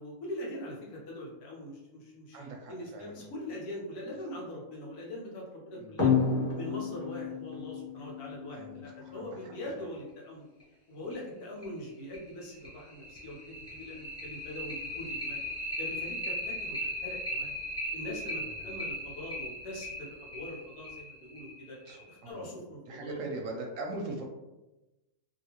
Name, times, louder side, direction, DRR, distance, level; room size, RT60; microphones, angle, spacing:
voice 1, 0.0-6.1 6.5-10.5 10.9-15.4 15.8-17.5 17.9-21.8 22.1-23.2, left 1 dB, 90° left, -3 dB, 1.4 m, -42 dB
voice 2, 2.3-3.3 5.7-5.9 8.5-9.9 14.8-15.2 18.6-18.7 21.8-22.6 22.9-24.2, right 2 dB, 65° right, 1 dB, 0.8 m, -41 dB
sound 1, 6.0-9.1 10.6-10.7 11.1-11.2 11.6-11.7 12.1-22.2, left 3 dB, 15° left, 0.6 m, -34 dB
2.8 x 2.7 x 2.8 m, 1.0 s
omnidirectional pair, 1.6 m